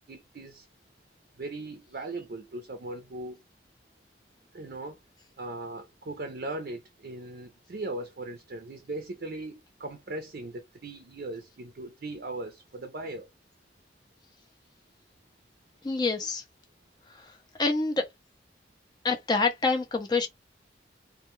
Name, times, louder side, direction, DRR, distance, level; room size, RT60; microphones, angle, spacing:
voice 1, 0.1-0.7 1.3-3.4 4.5-5.0 5.4-13.3, right 2 dB, 65° right, 0.5 m, -38 dB
voice 2, 15.8-16.4 17.1-17.3 17.6-18.1 19.0-20.3, left 3 dB, 25° left, 0.4 m, -26 dB
2.1 x 2.1 x 2.9 m
head